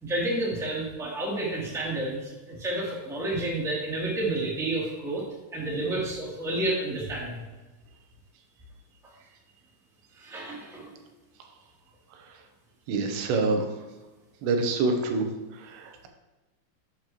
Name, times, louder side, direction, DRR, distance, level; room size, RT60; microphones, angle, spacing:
voice 1, 0.0-5.2 5.5-7.4 10.2-10.9, right 2 dB, ahead, -5 dB, 1.8 m, -30 dB
voice 2, 12.9-13.7 14.4-15.2 15.7-16.1, right 3 dB, 85° right, 4 dB, 3.2 m, -26 dB
12.0 x 7.9 x 3.0 m, 1.2 s
omnidirectional pair, 4.8 m